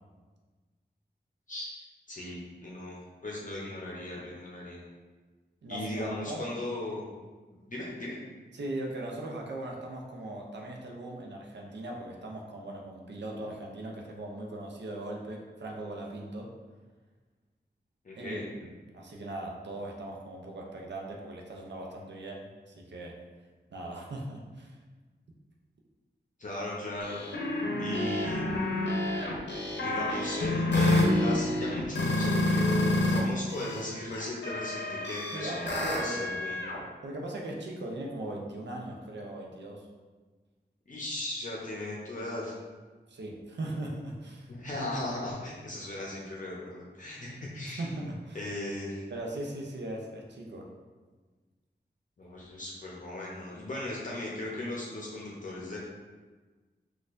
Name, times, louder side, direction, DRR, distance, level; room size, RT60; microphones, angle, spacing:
voice 1, 2.1-3.0 3.2-4.8 5.7-7.1 7.7-8.2 18.0-18.5 26.4-27.2 27.8-28.4 29.7-36.6 40.9-42.6 44.5-47.8 48.3-49.0 52.2-55.8, left 1 dB, 45° left, -5 dB, 0.6 m, -37 dB
voice 2, 5.6-6.5 8.5-16.5 18.2-23.2 23.7-24.8 35.3-36.2 37.0-39.9 43.1-44.5 47.8-48.4 49.1-50.7, right 1 dB, 80° right, 0 dB, 0.5 m, -39 dB
sound 1, 27.0-33.2 33.5-36.8, left 2 dB, 85° left, 0.6 m, -29 dB
4.3 x 2.3 x 2.5 m, 1.3 s
wide cardioid pair, 80°, 18 cm